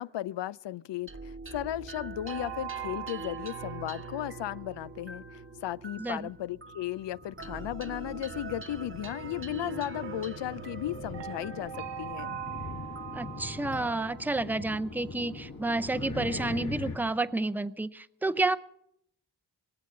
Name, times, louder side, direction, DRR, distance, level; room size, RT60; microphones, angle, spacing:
voice 1, 0.0-12.4, left 13 dB, 80° left, 0.5 m, -35 dB
sound 1, 1.1-15.8, right 3 dB, 30° right, 1.0 m, -44 dB
sound 2, 2.3-5.2 9.9-14.9, right 9 dB, 80° right, 0.6 m, -42 dB
voice 2, 6.0-6.3 13.1-18.6, right 2 dB, 5° right, 0.6 m, -30 dB
sound 3, 7.1-17.0, left 3 dB, 55° left, 2.1 m, -42 dB
22.5 x 7.8 x 7.4 m
cardioid pair, 75°, 43 cm